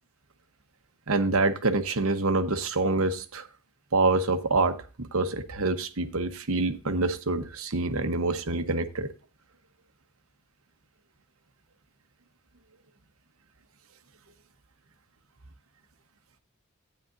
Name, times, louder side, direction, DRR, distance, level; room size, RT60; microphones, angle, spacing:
voice 1, 1.1-3.5 3.9-9.1, right 3 dB, 80° right, 1.0 m, -26 dB
12.5 x 9.3 x 2.6 m
head